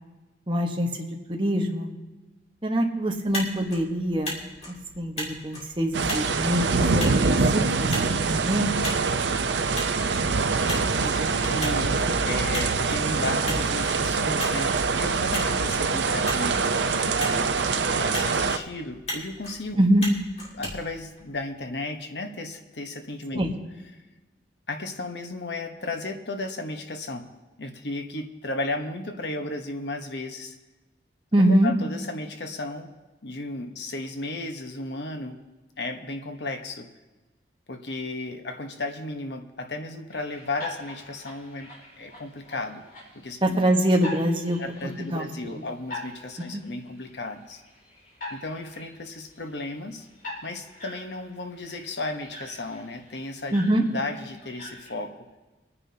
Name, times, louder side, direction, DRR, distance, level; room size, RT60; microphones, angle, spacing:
voice 1, 0.5-1.9 2.6-4.4 4.7-8.7 19.8-20.0 23.4-23.5 31.3-31.7 43.4-45.3 45.6-45.7 46.4-46.6 53.5-53.8, right 1 dB, 25° right, 1 dB, 1.2 m, -24 dB
Motor vehicle (road), 3.1-21.7, left 1 dB, 35° left, 2.8 m, -39 dB
sound 1, 5.9-18.6, right 4 dB, 75° right, 0.6 m, -24 dB
voice 2, 10.7-17.4 18.0-19.8 20.5-23.5 24.7-27.3 27.6-30.6 31.5-32.9 33.2-35.4 35.8-36.9 37.7-42.8 43.2-43.6 44.6-47.6 48.3-50.1 50.4-53.5 53.9-55.2, left 2 dB, 70° left, 5 dB, 1.1 m, -34 dB
sound 2, 40.1-54.9, left 2 dB, 50° left, 4.7 m, -44 dB
25.5 x 9.8 x 2.8 m, 1.1 s
head